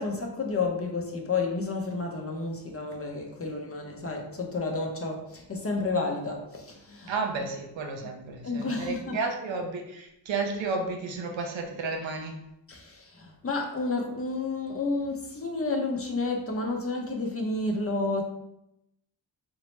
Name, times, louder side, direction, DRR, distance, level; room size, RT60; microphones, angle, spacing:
voice 1, 0.0-7.1 8.4-9.2 12.7-18.2, left 3 dB, 30° left, 1 dB, 0.6 m, -31 dB
voice 2, 7.1-12.4, right 4 dB, 70° right, 3 dB, 0.6 m, -32 dB
3.0 x 2.0 x 3.1 m, 0.81 s
cardioid pair, 45°, 47 cm